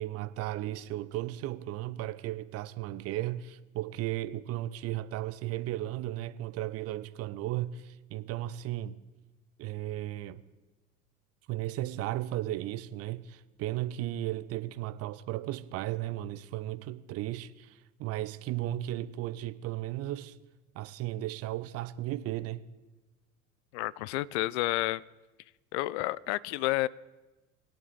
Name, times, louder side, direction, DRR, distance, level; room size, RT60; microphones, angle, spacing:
voice 1, 0.0-9.0 9.6-10.4 11.5-20.4 20.7-22.6, right 14 dB, 35° right, 0.6 m, -35 dB
voice 2, 23.7-25.0 25.7-26.9, left 18 dB, 55° left, 0.5 m, -30 dB
20.5 x 8.9 x 3.8 m
figure-of-eight pair, 70°, 42 cm